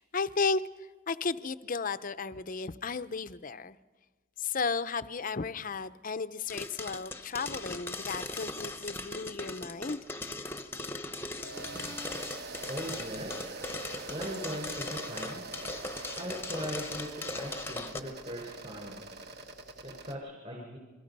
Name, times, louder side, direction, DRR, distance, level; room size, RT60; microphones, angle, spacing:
voice 1, 0.1-0.6 1.1-3.8 4.4-10.0 10.7-10.9 11.5-12.2, left 4 dB, 40° left, 13 dB, 0.6 m, -34 dB
sound 1, 6.5-18.0, left 3 dB, 10° left, 0.9 m, -39 dB
sound 2, 11.3-20.1, right 3 dB, 50° right, 1.4 m, -44 dB
voice 2, 12.7-13.3 14.1-15.4 16.1-19.0 19.8-20.8, equal, 35° right, -1 dB, 4.2 m, -39 dB
28.0 x 22.5 x 5.4 m, 1.3 s
head